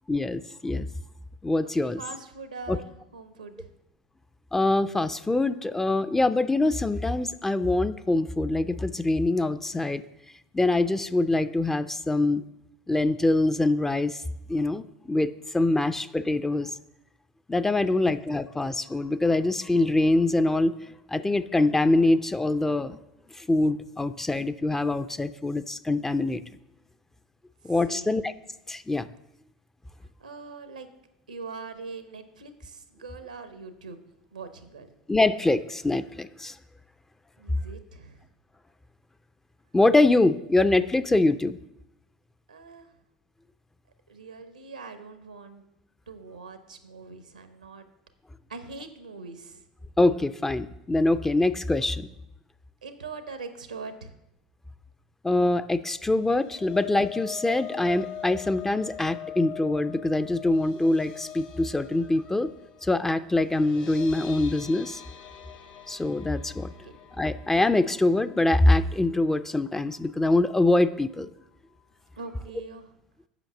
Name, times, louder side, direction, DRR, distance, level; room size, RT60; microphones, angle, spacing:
voice 1, 0.1-0.9 1.4-2.0 2.7-2.8 4.5-10.0 10.5-12.4 12.9-14.2 14.5-16.7 17.5-20.7 21.1-23.0 23.4-26.4 27.6-28.3 28.7-29.1 35.1-36.5 39.7-41.6 50.0-52.1 55.2-62.5 62.8-65.0 65.9-66.7 67.2-71.3, left 2 dB, 10° left, 11 dB, 0.4 m, -24 dB
voice 2, 1.6-3.7 17.9-18.1 27.9-28.2 30.2-30.9 31.3-34.0 34.3-34.9 37.4-38.2 42.5-42.9 44.1-45.6 46.1-47.9 48.5-49.6 52.8-54.1 66.6-66.9 72.2-73.0, right 4 dB, 85° right, 10 dB, 0.9 m, -42 dB
sound 1, 56.0-70.3 70.6-70.9 71.2-71.3, left 9 dB, 60° left, 1.4 m, -43 dB
8.1 x 5.8 x 6.9 m, 0.86 s
figure-of-eight pair, 75°, 4 cm